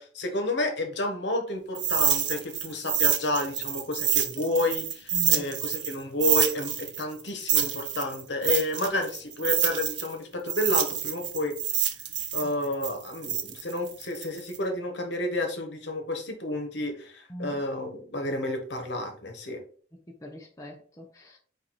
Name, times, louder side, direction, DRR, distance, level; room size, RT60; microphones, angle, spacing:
voice 1, 0.0-11.9 12.3-19.6, left 1 dB, 70° left, 1.0 m, -30 dB
sound 1, 1.7-5.9 6.2-10.1 10.5-14.6, right 9 dB, 75° right, 0.6 m, -27 dB
voice 2, 5.1-5.5 12.4-12.5 17.3-17.6 20.1-21.4, equal, 20° left, 0.6 m, -41 dB
4.6 x 2.5 x 3.9 m
head